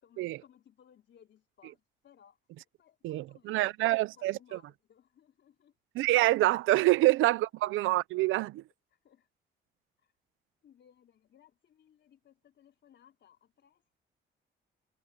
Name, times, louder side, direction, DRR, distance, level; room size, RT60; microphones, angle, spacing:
voice 1, 0.0-2.4 2.8-5.7 8.9-9.3 10.0-10.1 10.6-14.0, left 9 dB, 65° left, 4.3 m, -62 dB
voice 2, 3.0-4.6 5.9-8.6, right 17 dB, 90° right, 0.6 m, -26 dB
cardioid pair, 90°, 20 cm